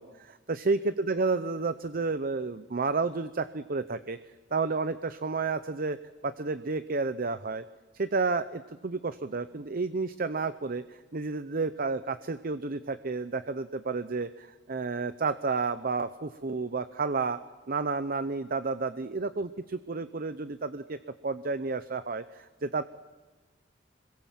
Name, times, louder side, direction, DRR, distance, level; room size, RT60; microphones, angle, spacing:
voice 1, 0.0-4.2 4.5-6.0 6.2-7.6 7.9-17.4 17.7-21.0 21.2-22.8, right 4 dB, 50° right, 12 dB, 0.7 m, -31 dB
26.0 x 22.0 x 7.5 m, 1.2 s
head